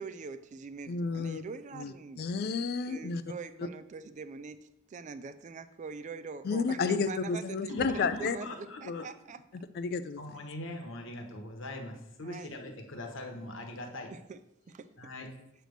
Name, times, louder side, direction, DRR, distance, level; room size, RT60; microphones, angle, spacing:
voice 1, 0.0-2.3 2.9-9.4 12.2-12.6 14.1-14.4 14.7-14.9, right 5 dB, 35° right, 12 dB, 0.3 m, -43 dB
voice 2, 0.9-1.4 1.7-3.2 3.6-3.7 6.4-8.4 8.9-9.1 9.8-10.2, left 5 dB, 50° left, 11 dB, 0.3 m, -31 dB
voice 3, 7.7-9.0 10.2-14.1 15.0-15.3, left 1 dB, 65° left, 3 dB, 1.2 m, -41 dB
7.6 x 3.4 x 6.4 m, 0.88 s
head